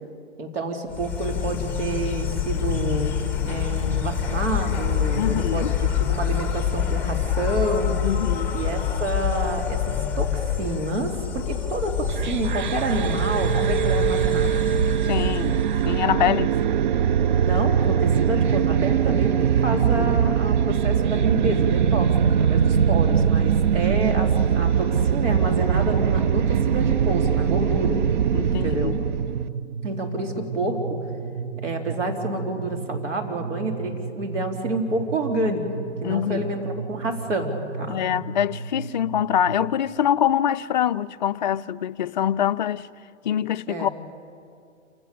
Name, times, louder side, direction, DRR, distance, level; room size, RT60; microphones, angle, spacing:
voice 1, 0.4-3.2 3.4-8.0 8.5-14.6 17.4-28.0 28.6-29.0 29.8-30.9 31.6-38.0 43.7-43.9, right 2 dB, 90° right, 3.7 m, -28 dB
Insect, 0.9-16.0, left 8 dB, 5° left, 1.8 m, -26 dB
voice 2, 5.2-5.7 8.0-8.5 15.1-15.6 15.8-16.5 19.7-20.2 28.3-28.9 36.0-36.4 37.9-42.9 43.2-43.9, left 10 dB, 40° left, 0.4 m, -24 dB
sound 1, 12.0-29.5, right 8 dB, 45° right, 0.4 m, -21 dB
sound 2, 26.7-39.7, right 6 dB, 65° right, 1.1 m, -34 dB
28.0 x 17.0 x 7.0 m
hypercardioid pair, 145°, 36 cm